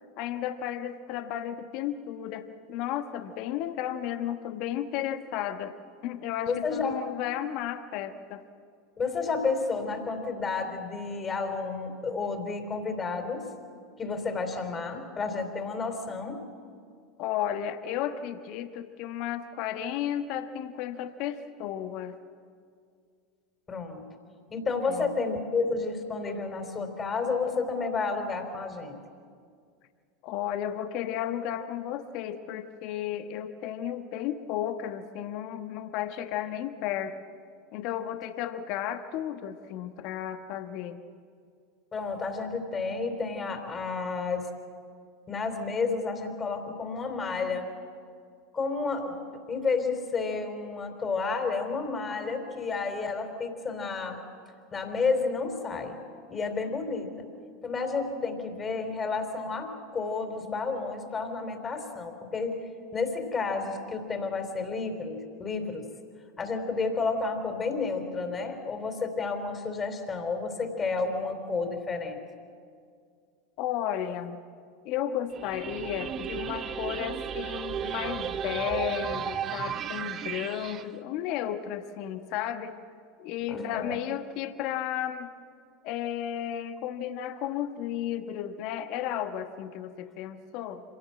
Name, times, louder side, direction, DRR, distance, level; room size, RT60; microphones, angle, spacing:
voice 1, 0.2-5.7 6.0-8.4 17.2-22.2 24.8-25.2 30.2-37.2 37.7-41.0 73.6-74.4 74.8-82.8 83.2-85.3 85.8-90.8, left 10 dB, 55° left, 8 dB, 1.3 m, -33 dB
voice 2, 6.5-7.0 9.0-13.5 14.0-16.4 23.7-24.1 24.5-29.0 41.9-44.5 45.3-47.6 48.5-49.2 49.5-54.2 54.7-56.0 56.3-57.1 57.6-62.6 62.9-65.9 66.4-72.2 83.5-84.0, left 4 dB, 25° left, 6 dB, 3.9 m, -31 dB
sound 1, 75.3-80.8, right 8 dB, 40° right, 1.0 m, -34 dB
26.0 x 17.5 x 7.7 m, 2.2 s
hypercardioid pair, 85°, 0 cm